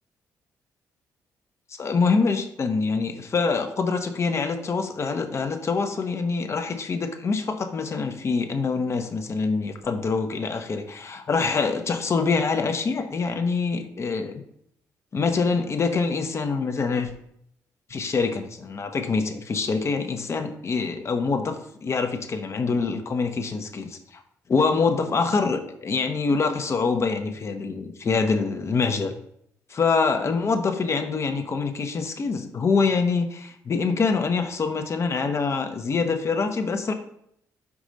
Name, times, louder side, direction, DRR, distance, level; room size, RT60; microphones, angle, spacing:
voice 1, 1.8-14.3 15.1-17.1 17.9-21.6 21.8-24.2 24.5-29.1 29.7-36.9, left 4 dB, 45° left, 6 dB, 0.8 m, -25 dB
5.2 x 4.8 x 3.9 m, 0.73 s
cardioid pair, 85°, 7 cm